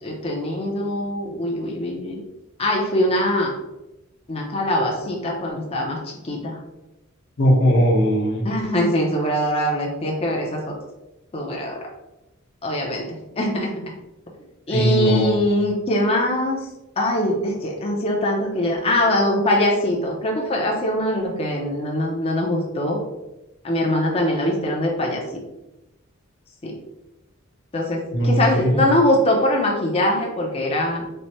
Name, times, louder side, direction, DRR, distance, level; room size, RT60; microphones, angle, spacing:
voice 1, 0.0-2.2 2.6-3.5 4.3-6.6 8.4-10.7 11.3-11.8 12.6-13.0 13.4-13.8 14.7-16.6 17.0-23.0 23.6-25.4 26.6-26.7 27.7-31.1, left 1 dB, 30° left, -1 dB, 0.5 m, -22 dB
voice 2, 7.4-8.4 14.7-15.4 28.1-28.9, equal, 55° left, -2 dB, 0.9 m, -19 dB
3.3 x 2.0 x 4.0 m, 0.98 s
head